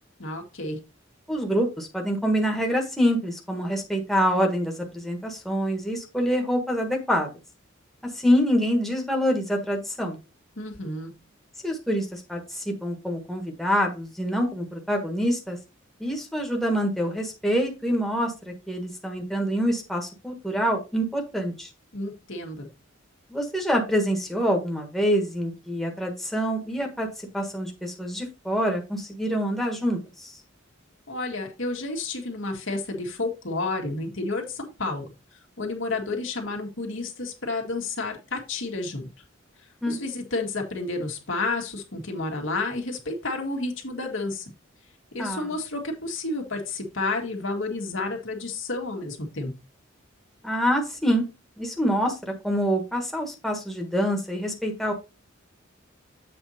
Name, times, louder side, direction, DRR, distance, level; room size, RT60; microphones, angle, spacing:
voice 1, 0.2-0.8 10.6-11.1 21.9-22.7 31.1-35.1 35.6-39.1 39.9-44.5 45.1-49.5, left 3 dB, 70° left, 1 dB, 1.8 m, -31 dB
voice 2, 1.3-7.3 8.1-10.2 11.6-15.6 16.0-21.7 23.3-27.1 27.3-30.3 39.8-40.0 45.2-45.5 50.4-51.2 51.6-54.9, equal, ahead, 1 dB, 1.5 m, -26 dB
7.7 x 4.5 x 4.2 m, 0.28 s
head